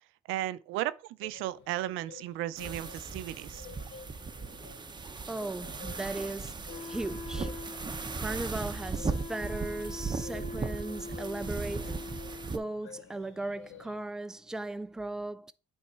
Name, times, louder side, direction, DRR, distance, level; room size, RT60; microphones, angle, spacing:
voice 1, 0.3-0.9 1.2-3.7, right 14 dB, 80° right, 0.6 m, -34 dB
sound 1, 1.2-14.0, left 7 dB, 70° left, 1.1 m, -52 dB
sound 2, 2.6-12.6, right 4 dB, 20° right, 0.8 m, -37 dB
voice 2, 5.3-12.1 12.5-15.5, right 2 dB, 5° right, 0.5 m, -38 dB
Wind instrument woodwind instrument, 6.7-12.6, left 3 dB, 50° left, 1.0 m, -43 dB
8.6 x 3.6 x 4.5 m
supercardioid pair, 85°, 21 cm